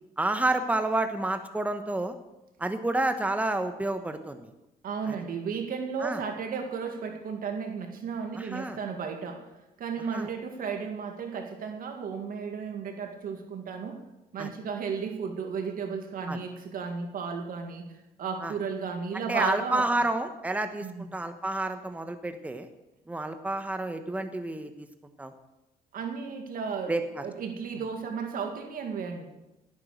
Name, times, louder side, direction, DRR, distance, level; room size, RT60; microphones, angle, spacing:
voice 1, 0.2-2.2 2.6-4.5 5.1-5.2 6.0-6.2 8.4-8.8 10.1-10.3 14.4-14.5 16.3-16.4 18.4-18.5 19.1-22.7 23.1-24.9 25.2-25.3 26.9-27.2, right 2 dB, 10° right, 8 dB, 1.0 m, -29 dB
voice 2, 4.8-9.4 9.8-14.0 14.3-19.9 20.8-21.1 25.9-27.0 27.2-29.3, right 6 dB, 65° right, 4 dB, 2.0 m, -34 dB
17.5 x 9.3 x 6.5 m, 0.96 s
cardioid pair, 110°, 16 cm